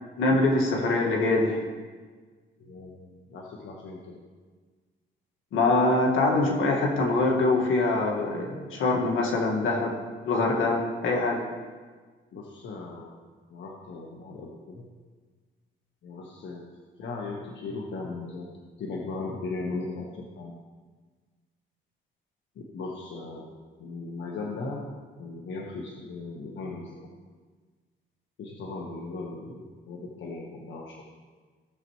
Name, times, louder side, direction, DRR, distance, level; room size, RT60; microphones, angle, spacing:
voice 1, 0.2-1.6 5.5-9.9 10.2-11.4, left 2 dB, 85° left, 0 dB, 1.9 m, -24 dB
voice 2, 2.6-4.2 12.3-13.2 13.5-14.9 16.0-16.6 17.0-18.5 18.8-20.6 22.6-24.9 25.2-27.0 28.4-31.0, left 3 dB, 70° left, -2 dB, 1.4 m, -37 dB
16.5 x 6.8 x 3.2 m, 1.5 s
cardioid pair, 90°, 20 cm